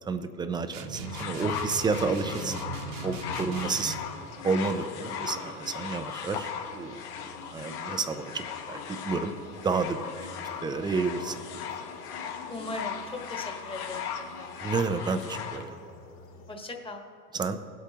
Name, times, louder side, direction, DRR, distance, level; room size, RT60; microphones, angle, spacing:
voice 1, 0.0-2.6 3.0-4.0 4.4-10.1 10.6-11.7 14.6-15.8 17.3-17.6, right 4 dB, 10° right, 9 dB, 0.4 m, -30 dB
sound 1, 0.7-4.1, right 2 dB, 45° right, 1.1 m, -38 dB
sound 2, 1.0-15.6 16.5-16.6, left 7 dB, 70° left, 1.5 m, -38 dB
sound 3, 3.2-16.6, left 4 dB, 45° left, 1.8 m, -49 dB
voice 2, 12.5-14.1 14.4-14.5 16.5-17.1, left 2 dB, 10° left, 3 dB, 1.3 m, -38 dB
19.0 x 8.3 x 2.9 m, 2.6 s
hypercardioid pair, 110°, 46 cm